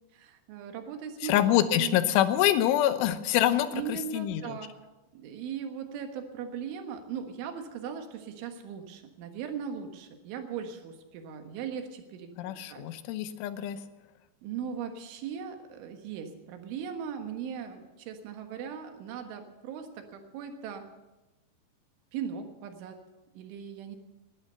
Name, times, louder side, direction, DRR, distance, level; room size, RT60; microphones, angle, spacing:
voice 1, 0.1-1.4 1.7-2.2 3.7-4.7 5.1-12.9 14.4-20.9 22.1-23.0 23.4-24.0, right 7 dB, 85° right, 5 dB, 3.9 m, -39 dB
voice 2, 1.2-4.6 12.4-13.8, left 12 dB, 85° left, 11 dB, 3.3 m, -26 dB
19.5 x 12.0 x 5.8 m, 1.1 s
omnidirectional pair, 5.4 m